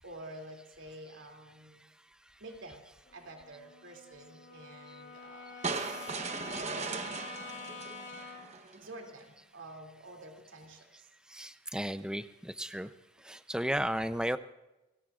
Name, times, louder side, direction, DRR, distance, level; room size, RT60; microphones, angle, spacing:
voice 1, 0.0-1.8 2.4-2.8 3.1-5.8 6.3-7.2 8.6-11.1, right 1 dB, 75° right, 2 dB, 2.7 m, -49 dB
Brass instrument, 3.1-8.6, left 4 dB, 65° left, 2.6 m, -47 dB
sound 1, 5.6-8.9, right 4 dB, 35° right, 0.9 m, -38 dB
voice 2, 5.8-6.1 11.3-12.9 13.2-14.4, right 1 dB, 5° right, 11 dB, 0.5 m, -34 dB
29.5 x 18.0 x 2.4 m, 0.99 s
head